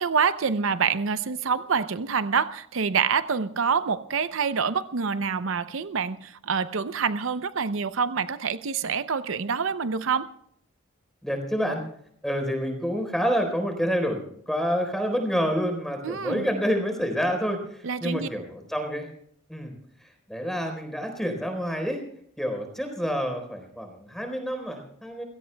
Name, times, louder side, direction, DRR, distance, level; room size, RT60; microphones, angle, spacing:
voice 1, 0.0-10.3 16.0-16.5 17.8-18.3, right 6 dB, 70° right, 12 dB, 0.6 m, -26 dB
voice 2, 11.2-11.8 12.2-19.1 19.5-19.7 20.0-22.0 22.4-25.2, equal, ahead, 5 dB, 4.0 m, -28 dB
28.5 x 17.5 x 2.2 m, 0.68 s
head